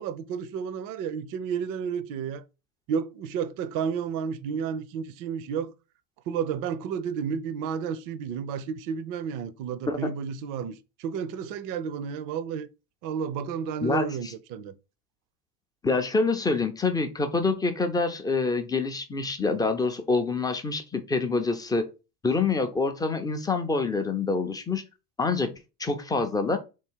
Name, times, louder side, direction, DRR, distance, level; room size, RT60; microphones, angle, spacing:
voice 1, 0.0-2.4 2.9-5.7 6.3-12.7 13.0-14.7, right 7 dB, 45° right, 0.5 m, -31 dB
voice 2, 15.8-21.9 22.2-24.8 25.2-25.5 25.8-26.6, left 3 dB, 10° left, 0.4 m, -26 dB
3.7 x 2.6 x 4.4 m
hypercardioid pair, 95°, 48 cm